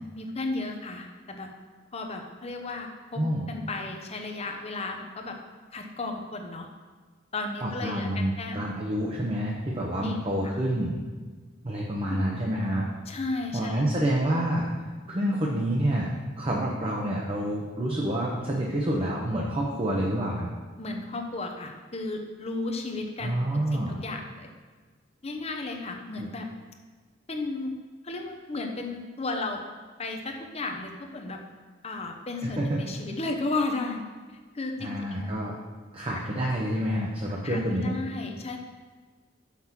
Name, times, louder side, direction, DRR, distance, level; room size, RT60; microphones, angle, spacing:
voice 1, 0.0-1.5 1.9-3.2 3.5-5.4 5.7-6.7 7.3-8.6 10.0-10.2 12.1-12.3 13.1-13.8 20.0-20.3 20.8-23.4 23.7-24.5 25.2-26.5 27.3-27.7 28.0-29.6 30.0-31.4 31.8-34.0 34.5-35.4 37.4-38.6, left 3 dB, 30° left, 4 dB, 0.8 m, -34 dB
voice 2, 7.6-11.0 11.6-12.8 13.5-14.6 15.1-16.1 16.4-20.5 23.2-24.0 26.2-26.3 32.4-32.8 34.8-35.5 35.9-37.9, right 1 dB, 30° right, -3 dB, 0.9 m, -28 dB
6.2 x 5.9 x 5.9 m, 1.4 s
head